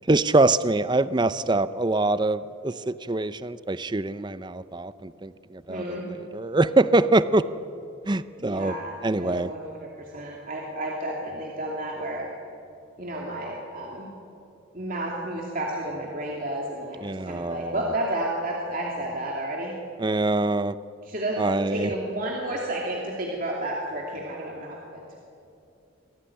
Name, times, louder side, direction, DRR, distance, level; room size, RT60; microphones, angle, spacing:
voice 1, 0.1-6.0 6.3-7.5 8.1-8.7 9.0-9.5 17.0-17.8 20.0-20.8 21.4-21.9, right 2 dB, 20° right, 15 dB, 0.5 m, -24 dB
voice 2, 5.7-6.1 8.4-12.3 13.0-14.1 14.7-19.7 21.0-21.4 21.7-25.2, right 1 dB, 45° right, -2 dB, 2.8 m, -31 dB
25.0 x 17.5 x 9.8 m, 2.7 s
head